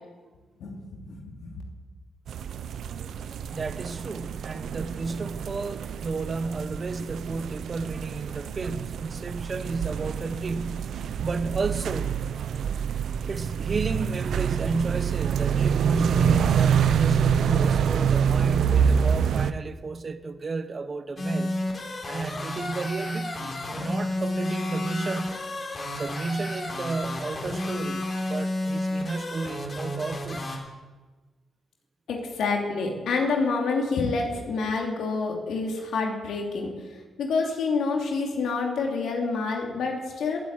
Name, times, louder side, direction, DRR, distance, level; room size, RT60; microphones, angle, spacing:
voice 1, 0.6-1.6 32.1-36.7 37.2-40.4, left 4 dB, 80° left, 2.9 m, -27 dB
sound 1, 2.3-19.5, right 7 dB, 75° right, 0.7 m, -26 dB
voice 2, 3.5-12.2 13.2-21.6 22.0-25.3 26.0-30.5, right 3 dB, 40° right, 1.2 m, -32 dB
sound 2, 21.2-30.6, left 1 dB, 40° left, 4.4 m, -31 dB
18.5 x 8.3 x 9.1 m
cardioid pair, 75°, 0 cm